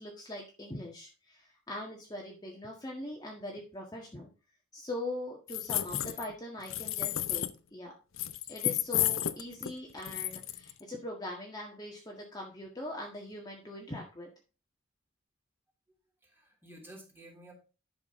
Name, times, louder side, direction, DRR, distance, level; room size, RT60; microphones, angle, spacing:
voice 1, 0.0-4.3 4.7-7.9 8.5-14.3, left 1 dB, 20° left, -1 dB, 1.6 m, -41 dB
sound 1, 5.5-6.3 6.6-7.5 8.2-9.7 10.0-10.7, left 12 dB, 70° left, 0.7 m, -32 dB
voice 2, 16.2-17.5, right 1 dB, 10° right, -1 dB, 3.2 m, -52 dB
11.0 x 6.4 x 3.8 m, 0.33 s
head